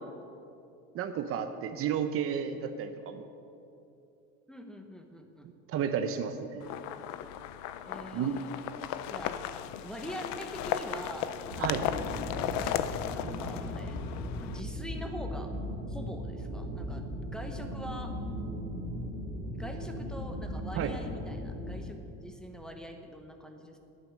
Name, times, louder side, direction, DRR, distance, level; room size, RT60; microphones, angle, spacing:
voice 1, 0.9-3.3 5.7-6.7 8.1-8.4 11.6-11.8 20.7-20.9, right 8 dB, 50° right, 8 dB, 0.7 m, -32 dB
voice 2, 4.5-5.5 7.8-8.5 9.1-12.8 13.1-15.5 15.9-17.0 17.3-18.1 19.5-23.8, equal, ahead, 4 dB, 1.0 m, -44 dB
sound 1, 6.6-14.6, left 11 dB, 65° left, 0.6 m, -36 dB
sound 2, 11.5-21.8, equal, 90° right, 2.4 m, -38 dB
10.5 x 9.2 x 6.5 m, 2.7 s
cardioid pair, 135°, 30 cm